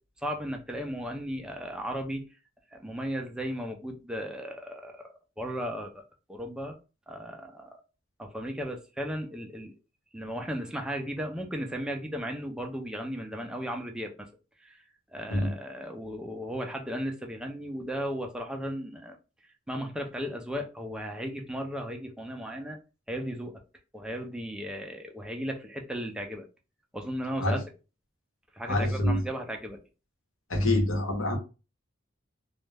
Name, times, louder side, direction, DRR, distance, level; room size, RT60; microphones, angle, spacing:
voice 1, 0.2-2.3 2.7-6.0 6.3-6.8 7.1-7.8 8.2-9.7 10.1-14.3 14.6-14.8 15.1-19.2 19.7-22.8 23.1-23.6 23.9-26.5 26.9-27.6 28.5-29.8, equal, 5° right, 0.4 m, -35 dB
voice 2, 28.7-29.2 30.5-31.4, left 1 dB, 90° left, 0.9 m, -26 dB
2.3 x 2.0 x 3.3 m
head